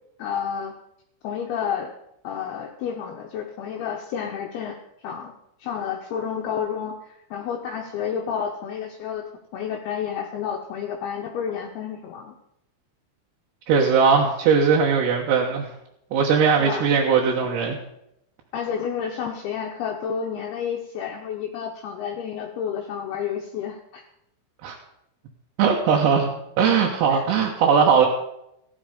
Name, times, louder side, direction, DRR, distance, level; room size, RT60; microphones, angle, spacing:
voice 1, 0.2-0.7 1.2-1.9 2.2-5.3 5.6-12.4 16.6-17.0 18.5-24.0 27.1-27.3, left 7 dB, 80° left, 2 dB, 2.4 m, -30 dB
voice 2, 13.7-15.7 16.1-17.8 24.6-24.8 25.6-26.3 26.6-28.1, right 6 dB, 70° right, -2 dB, 3.2 m, -19 dB
15.0 x 11.0 x 5.1 m, 0.79 s
omnidirectional pair, 5.7 m